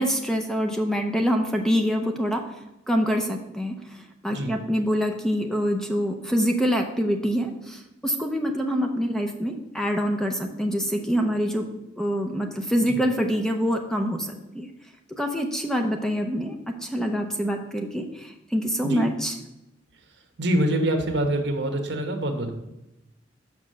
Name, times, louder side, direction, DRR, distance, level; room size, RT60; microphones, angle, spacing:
voice 1, 0.0-2.4 2.9-11.7 12.0-14.7 15.1-19.4, equal, 5° left, 3 dB, 0.6 m, -25 dB
voice 2, 20.4-22.5, right 1 dB, 65° right, 5 dB, 1.2 m, -25 dB
6.1 x 5.5 x 6.3 m, 0.92 s
head